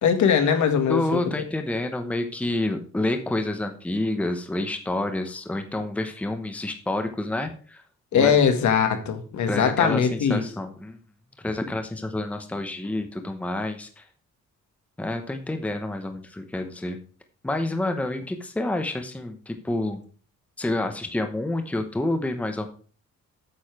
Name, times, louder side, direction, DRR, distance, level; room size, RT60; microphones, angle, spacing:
voice 1, 0.0-1.2 8.1-10.4, left 7 dB, 75° left, 6 dB, 1.9 m, -21 dB
voice 2, 0.9-7.8 8.1-8.3 9.5-11.0 11.4-14.0 15.0-17.0 17.4-20.0 20.6-22.7, left 1 dB, 5° left, 6 dB, 0.9 m, -28 dB
8.7 x 7.2 x 4.7 m, 0.41 s
cardioid pair, 165°, 30 cm